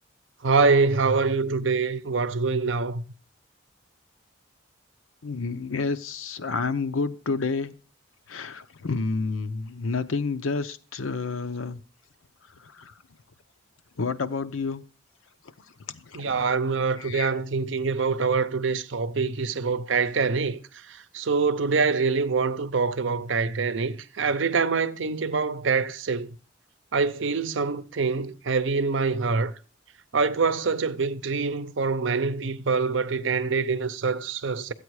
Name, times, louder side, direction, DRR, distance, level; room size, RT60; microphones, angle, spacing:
voice 1, 0.4-3.0 16.1-20.6 20.9-26.3 26.9-29.5 30.1-34.7, right 4 dB, 65° right, 0.7 m, -25 dB
voice 2, 5.2-7.8 8.3-11.8 12.6-12.9 14.0-14.8 16.0-16.4 17.0-17.4, left 4 dB, 85° left, 0.7 m, -29 dB
13.5 x 8.5 x 4.8 m
head